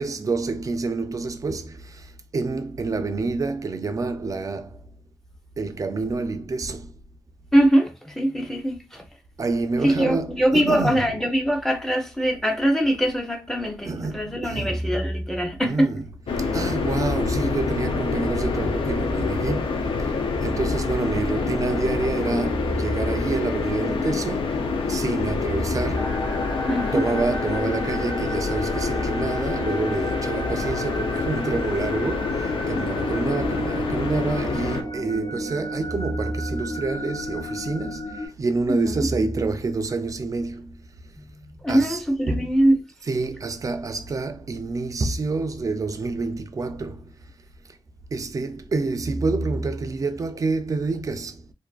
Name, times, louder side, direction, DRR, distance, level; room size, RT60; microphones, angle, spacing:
voice 1, 0.0-2.0 2.3-4.7 5.6-6.9 9.4-11.3 13.8-14.8 15.6-16.1 16.5-19.8 20.4-26.2 26.9-40.7 41.7-42.5 43.0-47.0 48.1-51.4, right 3 dB, 40° right, 0.4 m, -27 dB
voice 2, 7.5-9.0 9.8-15.9 26.7-27.0 32.7-32.9 38.7-39.1 41.4-42.8, equal, 5° left, 0.6 m, -22 dB
sound 1, 16.3-34.8, left 4 dB, 85° left, 0.5 m, -26 dB
sound 2, 25.9-38.3, equal, 50° left, 0.9 m, -33 dB
2.5 x 2.4 x 2.3 m
wide cardioid pair, 95°, 9 cm